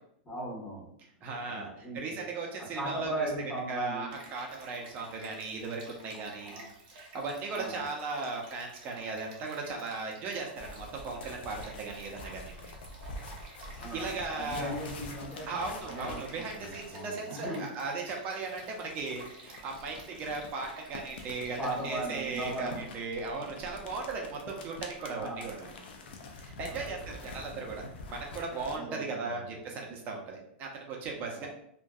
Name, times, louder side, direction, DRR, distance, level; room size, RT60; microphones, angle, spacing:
voice 1, 0.2-0.9 1.5-2.2 2.7-4.1 6.4-6.6 7.5-7.9 13.8-15.6 15.8-16.2 16.5-17.6 21.6-22.9 25.2-25.5 26.7-26.9 28.7-29.5 31.3-31.5, right 1 dB, 10° left, -8 dB, 1.0 m, -38 dB
voice 2, 1.2-3.3 3.7-6.6 6.9-12.7 13.7-14.7 15.5-21.6 21.8-25.7 26.4-31.5, right 3 dB, 30° right, 0 dB, 0.5 m, -37 dB
Stream, 4.1-22.6, right 2 dB, 60° right, 0.8 m, -53 dB
sound 1, 10.6-17.1 18.4-28.8, left 2 dB, 80° left, 0.4 m, -46 dB
2.5 x 2.2 x 2.3 m, 0.72 s
supercardioid pair, 150°, 6 cm